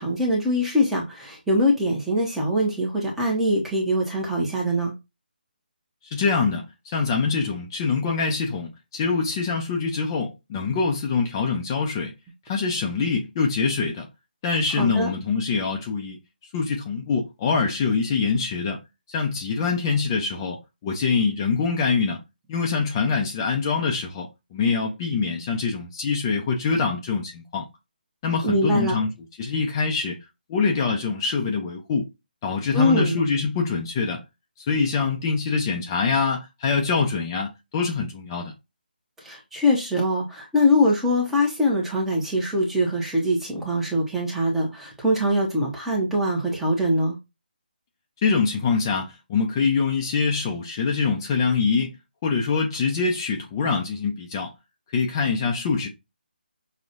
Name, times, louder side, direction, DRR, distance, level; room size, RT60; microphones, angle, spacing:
voice 1, 0.0-4.9 14.8-15.1 28.4-29.0 32.7-33.2 39.2-47.1, left 1 dB, 5° right, 0.9 m, -23 dB
voice 2, 6.0-12.1 12.5-14.1 14.4-16.2 16.5-18.8 19.1-22.2 22.5-27.6 28.2-29.1 29.4-30.2 30.5-32.1 32.4-34.2 34.6-38.5 48.2-52.0 52.2-54.5 54.9-55.9, left 5 dB, 25° left, 0.6 m, -24 dB
6.1 x 2.4 x 2.5 m
hypercardioid pair, 160°, 5 cm